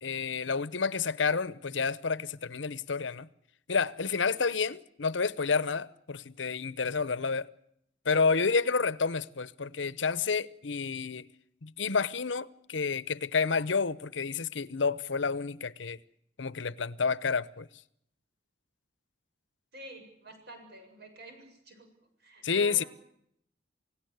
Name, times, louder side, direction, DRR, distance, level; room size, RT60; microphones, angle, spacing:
voice 1, 0.0-3.3 3.7-7.5 8.0-11.3 11.6-16.0 16.4-17.7 22.4-22.8, left 5 dB, 85° left, 0.9 m, -29 dB
voice 2, 19.7-21.9 22.2-22.9, right 1 dB, 60° right, 7.4 m, -49 dB
28.5 x 17.5 x 8.1 m
head